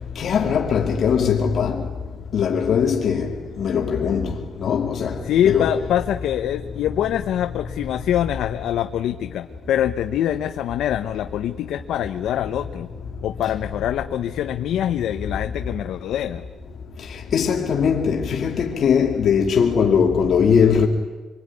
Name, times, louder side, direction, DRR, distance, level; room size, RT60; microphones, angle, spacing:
voice 1, 0.2-1.8 2.3-3.3 3.6-4.3 4.6-5.1 5.4-5.7 17.3-20.9, left 7 dB, 50° left, 2.4 m, -20 dB
voice 2, 5.2-12.9 13.2-16.5, left 11 dB, 85° left, 0.9 m, -24 dB
26.5 x 23.5 x 9.8 m
cardioid pair, 155°, 0 cm